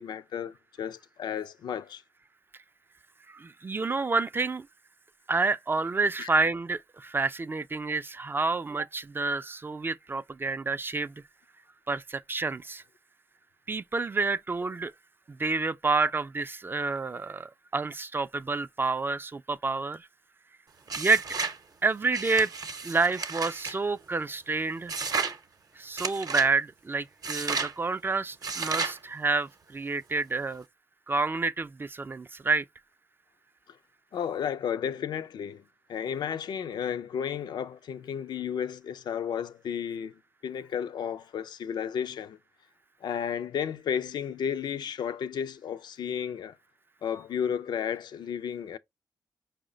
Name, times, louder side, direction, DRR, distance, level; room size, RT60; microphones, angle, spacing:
voice 1, 0.0-2.0 6.2-6.3 33.7-33.8 34.1-35.6 35.9-42.4 43.0-46.6 47.0-48.8, left 8 dB, 75° left, 0.4 m, -33 dB
voice 2, 3.3-4.7 5.3-11.1 11.9-12.8 13.7-14.9 15.3-20.1 21.0-21.2 21.8-22.5 22.8-24.9 25.8-30.6 31.1-32.6, right 3 dB, 30° right, 0.3 m, -29 dB
sound 1, 20.9-21.6 22.1-23.8 24.9-25.4 26.0-26.5 27.2-27.7 28.4-29.0, right 4 dB, 55° right, 0.7 m, -32 dB
4.8 x 2.1 x 3.7 m
cardioid pair, 55°, 7 cm